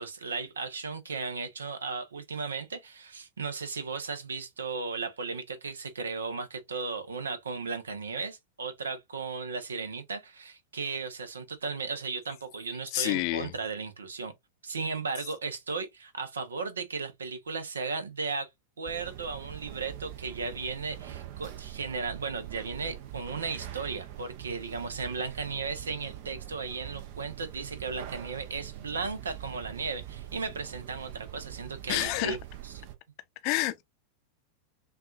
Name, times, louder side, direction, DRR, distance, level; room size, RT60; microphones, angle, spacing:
voice 1, 0.0-14.3 14.6-18.5 18.8-32.4 32.6-32.8, right 4 dB, 70° right, 0.9 m, -35 dB
voice 2, 12.9-13.5 31.9-32.4 33.4-33.8, left 18 dB, 45° left, 0.6 m, -28 dB
sound 1, 18.8-32.9, right 12 dB, 50° right, 0.7 m, -43 dB
5.8 x 2.5 x 2.4 m
figure-of-eight pair, 90°, 0 cm